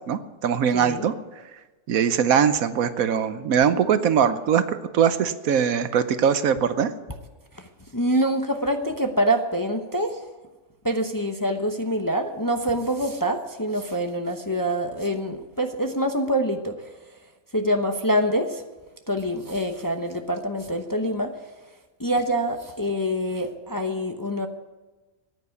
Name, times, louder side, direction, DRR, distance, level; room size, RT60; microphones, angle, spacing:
voice 1, 0.1-1.1 1.9-6.9, right 8 dB, 75° right, 12 dB, 1.2 m, -21 dB
voice 2, 0.7-1.0 7.5-10.2 10.8-16.9 17.5-18.6 19.1-21.3 22.0-24.5, equal, 15° left, 5 dB, 0.8 m, -25 dB
14.5 x 9.7 x 8.2 m, 1.2 s
omnidirectional pair, 1.5 m